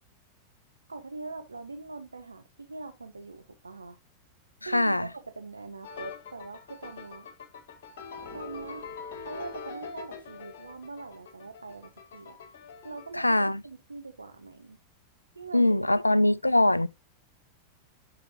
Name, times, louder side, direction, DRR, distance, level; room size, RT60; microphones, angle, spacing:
voice 1, 0.9-4.0 4.6-7.3 8.3-8.9 9.3-12.4 12.8-13.4 13.6-14.8 15.3-16.4, right 3 dB, 80° right, 0.7 m, -43 dB
voice 2, 4.6-5.1 13.2-13.6 15.5-16.9, left 1 dB, 85° left, 0.3 m, -22 dB
sound 1, 5.8-13.1, left 5 dB, 55° left, 1.6 m, -43 dB
sound 2, 8.1-10.4, right 4 dB, 35° right, 2.3 m, -57 dB
7.9 x 6.0 x 2.8 m
figure-of-eight pair, 90°, 0 cm